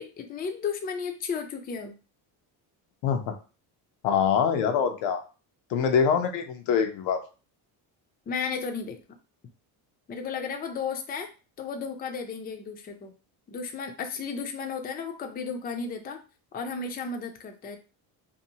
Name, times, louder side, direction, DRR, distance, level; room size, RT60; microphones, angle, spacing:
voice 1, 0.0-1.9 8.3-9.0 10.1-11.3 11.6-13.1 13.5-16.2 16.5-17.8, left 5 dB, 20° left, 5 dB, 0.4 m, -34 dB
voice 2, 3.0-3.4 4.0-5.2 5.7-7.2, left 7 dB, 90° left, 5 dB, 0.7 m, -24 dB
2.6 x 2.6 x 2.8 m, 0.33 s
cardioid pair, 115°, 43 cm